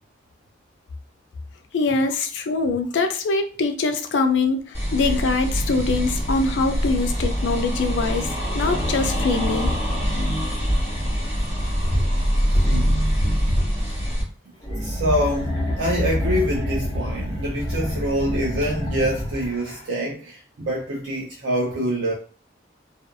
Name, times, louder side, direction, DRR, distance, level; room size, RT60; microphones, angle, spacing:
voice 1, 1.7-8.3 8.5-9.7, left 3 dB, 75° left, 0.4 m, -23 dB
sound 1, 4.7-14.2, equal, 15° right, 1.5 m, -23 dB
voice 2, 12.6-13.0 14.8-22.1, equal, 85° right, 0.6 m, -25 dB
sound 2, 14.6-19.9, left 1 dB, 20° left, 0.7 m, -27 dB
2.5 x 2.3 x 2.5 m
head